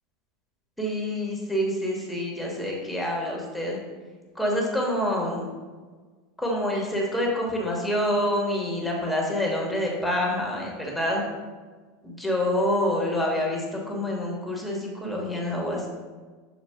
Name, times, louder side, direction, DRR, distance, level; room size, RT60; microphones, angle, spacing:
voice 1, 0.8-3.8 4.3-5.5 6.4-11.2 12.0-15.9, left 1 dB, 5° left, -2 dB, 1.1 m, -27 dB
6.6 x 2.2 x 3.5 m, 1.4 s
hypercardioid pair, 100°, 0 cm